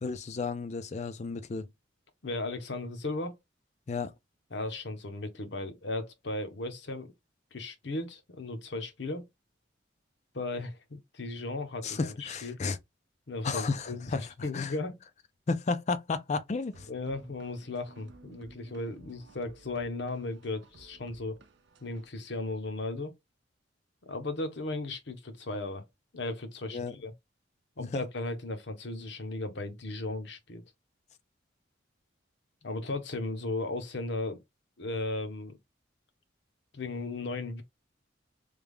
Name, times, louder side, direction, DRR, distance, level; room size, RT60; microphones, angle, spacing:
voice 1, 0.0-1.7 3.9-4.1 11.8-12.8 13.4-14.7 15.5-16.9 26.7-27.0 27.8-28.0, left 4 dB, 35° left, 0.4 m, -33 dB
voice 2, 2.2-3.4 4.5-7.1 7.5-9.3 10.3-12.6 13.3-15.0 16.9-21.4 21.8-23.1 24.0-25.8 26.1-27.1 27.8-30.6 32.6-34.4 34.8-35.6 36.7-37.6, left 2 dB, 65° left, 0.8 m, -36 dB
sound 1, 16.7-22.1, right 3 dB, 65° right, 0.6 m, -57 dB
3.3 x 2.3 x 3.4 m
head